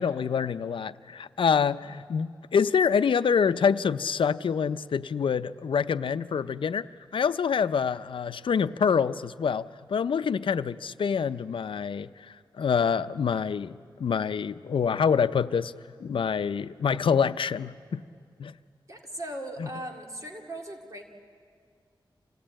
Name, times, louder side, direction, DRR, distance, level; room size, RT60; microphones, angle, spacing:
voice 1, 0.0-6.9 7.1-12.1 12.6-15.7 16.0-18.0 18.4-18.5, left 6 dB, 85° left, 13 dB, 0.5 m, -26 dB
voice 2, 18.9-21.0, right 1 dB, 40° right, 2 dB, 2.2 m, -38 dB
27.0 x 17.5 x 8.9 m, 2.1 s
wide cardioid pair, 85°, 9 cm